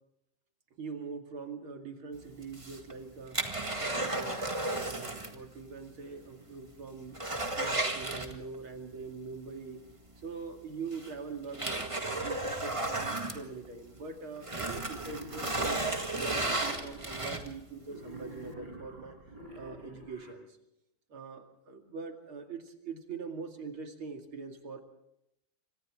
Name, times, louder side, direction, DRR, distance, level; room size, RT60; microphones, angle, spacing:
voice 1, 0.8-3.4 3.8-4.4 4.8-7.2 7.5-9.8 10.2-15.8 16.1-19.2 19.5-20.5 21.1-24.8, right 4 dB, 85° right, 3 dB, 3.3 m, -43 dB
sound 1, 2.4-5.4 5.7-5.8 6.3-6.4 6.7-8.7 10.2-10.3 10.9-14.0 14.4-17.7 18.2-18.3, right 2 dB, 15° right, 1.6 m, -34 dB
Wild animals, 14.8-17.3 17.8-20.3, right 1 dB, 55° right, 4.9 m, -47 dB
29.0 x 25.5 x 3.7 m, 0.81 s
omnidirectional pair, 2.2 m